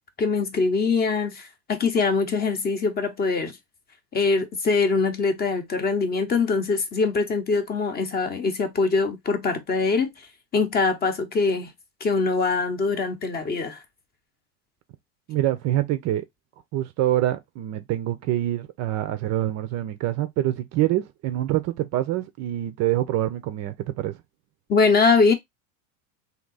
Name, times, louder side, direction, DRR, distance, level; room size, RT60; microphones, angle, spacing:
voice 1, 0.2-3.5 4.1-10.1 10.5-11.7 12.0-13.8 24.7-25.3, left 4 dB, 20° left, 0.8 m, -23 dB
voice 2, 15.3-16.2 16.7-24.2, right 13 dB, 35° right, 0.5 m, -25 dB
3.6 x 2.8 x 3.9 m
supercardioid pair, 125°, 47 cm